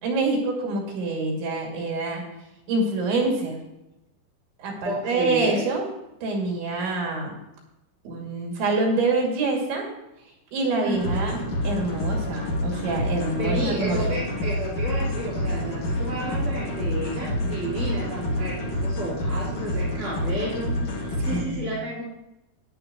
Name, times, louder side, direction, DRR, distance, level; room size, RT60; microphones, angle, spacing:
voice 1, 0.0-2.2 2.7-3.6 4.6-5.9 6.2-7.4 8.0-9.9 10.5-11.3 11.6-14.0 21.3-21.7, right 3 dB, 75° right, -1 dB, 4.8 m, -26 dB
voice 2, 4.8-5.7 10.8-11.4 13.4-22.0, right 1 dB, 15° right, -11 dB, 3.3 m, -31 dB
sound 1, 10.9-21.4, left 1 dB, 45° left, 2.8 m, -28 dB
14.5 x 10.5 x 3.0 m, 0.92 s
omnidirectional pair, 5.4 m